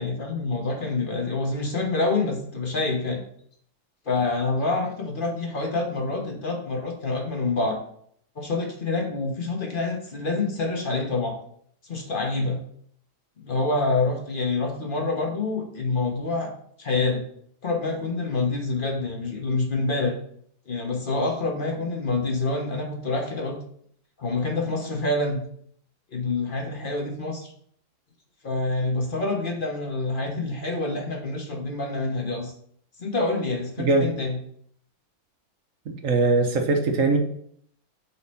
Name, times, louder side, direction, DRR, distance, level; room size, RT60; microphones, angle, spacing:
voice 1, 0.0-3.2 4.1-7.8 8.3-11.4 11.8-12.6 13.4-16.5 16.8-17.2 17.6-20.2 20.7-23.6 24.2-25.4 26.1-27.5 28.4-32.5 33.0-34.4, left 3 dB, 40° left, 2 dB, 0.8 m, -27 dB
voice 2, 35.9-37.2, right 3 dB, 60° right, 4 dB, 0.9 m, -21 dB
4.9 x 4.2 x 5.5 m, 0.63 s
omnidirectional pair, 2.1 m